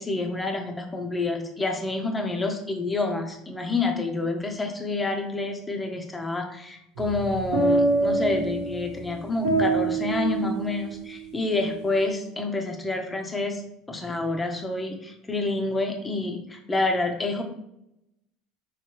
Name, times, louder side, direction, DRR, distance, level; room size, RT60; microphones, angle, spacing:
voice 1, 0.0-13.6 13.9-17.4, left 2 dB, 15° left, 4 dB, 0.9 m, -28 dB
sound 1, 7.0-11.3, right 3 dB, 85° right, 1.2 m, -26 dB
4.4 x 3.3 x 3.2 m, 0.80 s
hypercardioid pair, 85°, 0 cm